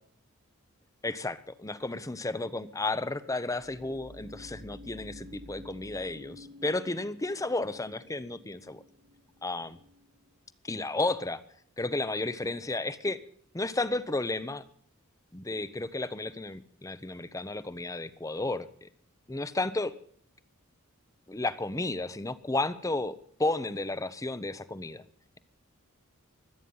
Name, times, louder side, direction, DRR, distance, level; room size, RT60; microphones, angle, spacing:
voice 1, 1.0-8.8 9.4-9.8 10.6-11.4 11.8-13.2 13.5-14.6 15.3-18.9 19.3-19.9 21.3-23.1 23.4-25.0, left 2 dB, 15° left, 13 dB, 0.8 m, -32 dB
sound 1, 3.5-10.3, left 1 dB, 70° right, 2.3 m, -52 dB
24.5 x 9.2 x 5.5 m, 0.63 s
head